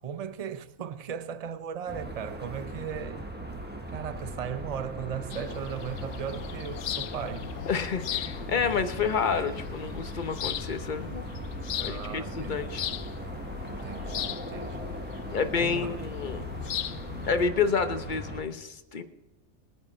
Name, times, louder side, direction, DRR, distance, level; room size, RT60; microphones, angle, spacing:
voice 1, 0.0-3.2 3.9-7.5 11.8-12.9 13.6-15.0 15.6-16.1, right 8 dB, 35° right, 0.6 m, -37 dB
sound 1, 1.9-18.4, right 1 dB, 10° right, 1.4 m, -39 dB
sound 2, 5.3-17.5, left 10 dB, 65° left, 0.8 m, -38 dB
voice 2, 7.7-11.3 11.8-12.8 15.3-16.4 17.3-19.0, left 5 dB, 40° left, 1.0 m, -29 dB
21.0 x 9.5 x 4.4 m
omnidirectional pair, 1.4 m